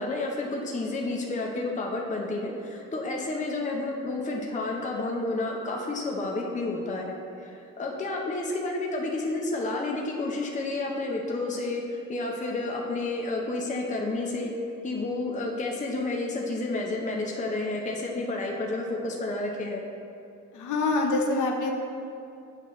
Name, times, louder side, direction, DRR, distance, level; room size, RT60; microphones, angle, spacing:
voice 1, 0.0-14.5 14.8-19.8, left 2 dB, 25° left, -1 dB, 0.7 m, -30 dB
voice 2, 20.5-21.7, left 2 dB, 75° left, 1 dB, 0.9 m, -25 dB
8.2 x 5.4 x 3.1 m, 2.6 s
cardioid pair, 90°, 30 cm